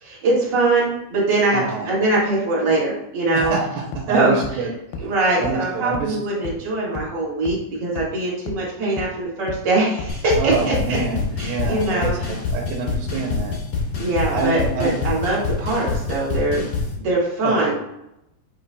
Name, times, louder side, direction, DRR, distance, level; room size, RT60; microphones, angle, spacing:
voice 1, 0.0-3.5 4.1-4.4 5.0-11.0 11.4-12.3 14.0-16.6 17.0-17.8, right 2 dB, 55° right, -7 dB, 1.2 m, -22 dB
voice 2, 1.5-1.9 3.3-4.7 5.0-5.1 5.4-6.2 10.4-13.5 14.3-15.0 17.4-17.8, right 4 dB, 80° right, -1 dB, 2.6 m, -26 dB
sound 1, 3.4-3.5 3.9-4.0 4.4-4.5 4.9-5.0 5.4-5.5 5.9-6.0 6.5-6.6 7.0-7.1 7.5-7.6 8.0-8.1 8.5-8.6 9.0-9.1 9.5-9.6 10.0-10.1 10.5-10.6 11.0-11.1, left 3 dB, 85° left, 2.5 m, -30 dB
sound 2, 10.1-16.9, left 4 dB, 60° left, 1.8 m, -26 dB
5.8 x 3.9 x 2.2 m, 0.84 s
omnidirectional pair, 4.6 m